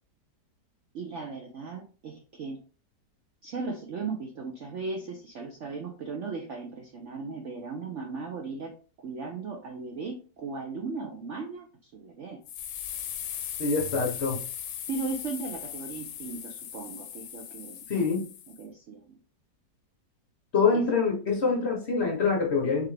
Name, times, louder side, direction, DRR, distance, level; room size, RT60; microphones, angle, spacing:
voice 1, 0.9-2.6 3.4-8.7 9.0-12.4 14.9-17.8 18.6-19.2 20.7-20.8, right 4 dB, 70° right, 3 dB, 0.7 m, -37 dB
sound 1, 12.5-18.6, left 9 dB, 80° left, 1.2 m, -38 dB
voice 2, 13.6-14.4 17.9-18.2 20.5-22.9, left 4 dB, 45° left, -1 dB, 1.1 m, -25 dB
3.6 x 3.3 x 3.2 m, 0.37 s
omnidirectional pair, 1.9 m